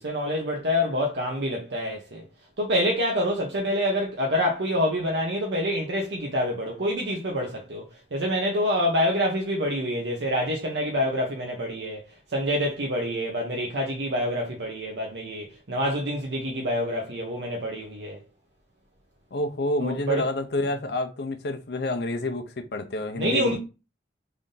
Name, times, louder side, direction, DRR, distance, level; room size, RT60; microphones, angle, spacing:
voice 1, 0.0-2.2 2.6-7.9 8.1-12.0 12.3-18.2 19.8-20.3 23.2-23.6, equal, 80° right, 0.8 m, -26 dB
voice 2, 19.3-23.6, left 2 dB, 65° left, 0.6 m, -28 dB
3.5 x 2.6 x 3.8 m
head